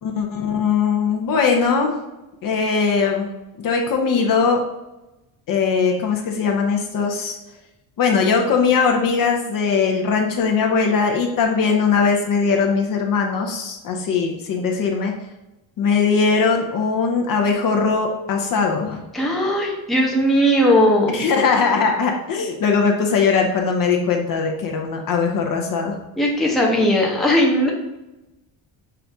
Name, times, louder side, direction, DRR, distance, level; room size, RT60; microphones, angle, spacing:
voice 1, 0.0-1.9 2.4-3.3 3.6-4.6 5.5-7.4 8.0-15.1 15.8-19.0 21.1-26.0, left 5 dB, 45° left, 1 dB, 0.8 m, -20 dB
voice 2, 19.1-21.2 26.2-27.7, equal, ahead, -2 dB, 0.7 m, -18 dB
5.7 x 2.6 x 3.4 m, 0.97 s
cardioid pair, 130°, 46 cm